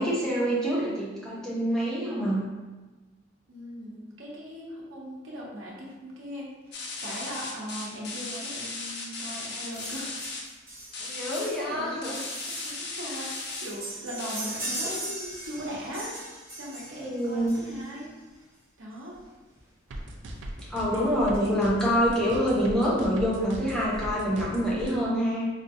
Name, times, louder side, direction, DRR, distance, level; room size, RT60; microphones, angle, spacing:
voice 1, 0.0-2.5 11.0-12.1 16.9-17.6 20.7-25.5, equal, 5° left, -7 dB, 0.7 m, -26 dB
voice 2, 3.5-10.2 11.4-16.2 16.5-18.1 18.8-19.2 20.9-21.6, equal, 85° right, -4 dB, 0.9 m, -39 dB
sound 1, 6.7-10.4 10.9-11.4 12.0-13.6 14.2-14.4 14.9-15.0, left 3 dB, 55° left, 0.6 m, -36 dB
sound 2, 9.7-18.1 19.1-19.2 19.6-19.7 19.9-20.0 20.4-21.0 21.5-21.6, right 1 dB, 15° right, 1.0 m, -39 dB
sound 3, 19.9-24.9, right 1 dB, 65° right, 0.4 m, -39 dB
4.1 x 2.5 x 2.6 m, 1.2 s
head